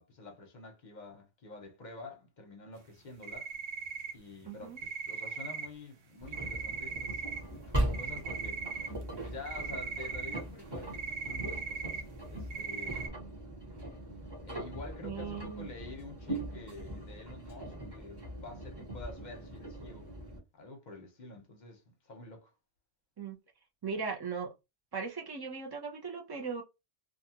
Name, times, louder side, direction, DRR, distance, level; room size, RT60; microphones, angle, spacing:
voice 1, 0.0-3.5 4.1-7.2 7.6-8.6 9.2-12.0 12.3-13.1 14.4-20.1 20.5-22.5, left 3 dB, 45° left, 0.8 m, -48 dB
sound 1, 3.2-4.5 4.8-5.7 6.3-7.4 7.8-9.2 9.5-10.4 10.9-12.1 12.5-13.1, right 5 dB, 90° right, 1.1 m, -39 dB
voice 2, 4.5-4.8 15.0-15.7 23.2-23.4 23.8-24.5 24.9-26.6, right 5 dB, 40° right, 0.3 m, -38 dB
Engine, 6.2-20.4, right 1 dB, 20° right, 1.1 m, -40 dB
2.5 x 2.3 x 2.8 m
omnidirectional pair, 1.2 m